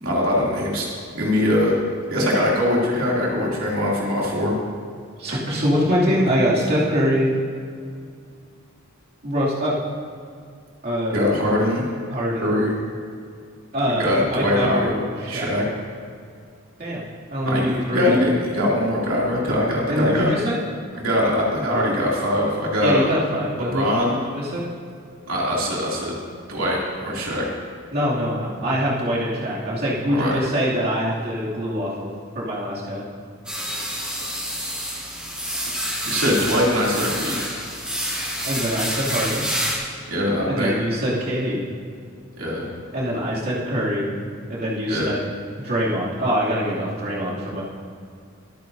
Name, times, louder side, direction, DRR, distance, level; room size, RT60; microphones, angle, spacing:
voice 1, 0.0-0.9 1.1-1.8 2.1-4.5 11.1-11.8 12.4-12.8 14.0-15.6 17.4-20.3 21.0-23.2 23.6-24.2 25.3-26.2 26.5-27.4 30.1-30.4 36.0-37.4 40.1-40.8 42.4-42.7 44.9-45.1, left 1 dB, 85° right, -4 dB, 2.8 m, -22 dB
voice 2, 5.2-7.3 9.2-9.7 10.8-11.3 12.1-12.5 13.7-14.9 15.2-15.5 16.8-17.0 17.3-18.1 19.9-20.6 22.8-24.6 27.9-33.0 38.4-39.4 40.5-41.6 42.9-44.1 44.5-45.2 45.6-47.6, equal, 50° right, -7 dB, 2.6 m, -24 dB
sound 1, 33.4-39.8, equal, 5° right, 3.2 m, -28 dB
23.5 x 9.3 x 2.7 m, 2.3 s
head